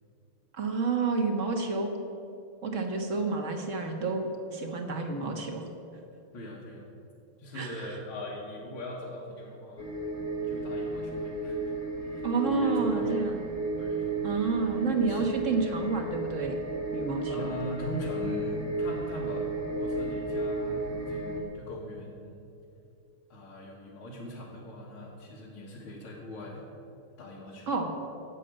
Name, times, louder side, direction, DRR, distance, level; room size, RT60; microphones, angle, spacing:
voice 1, 0.5-1.9 2.6-5.6 7.5-8.0 12.2-13.3 14.2-16.6 16.9-17.5 27.7-27.9, right 4 dB, 40° right, 4 dB, 1.5 m, -30 dB
voice 2, 6.3-6.9 7.4-9.9 10.4-13.4 13.8-15.4 17.0-22.5 23.3-26.6 27.2-27.7, left 1 dB, 85° left, -5 dB, 2.5 m, -41 dB
sound 1, 9.8-21.4, right 2 dB, 10° right, 1.2 m, -33 dB
12.0 x 7.6 x 8.9 m, 2.8 s
omnidirectional pair, 2.3 m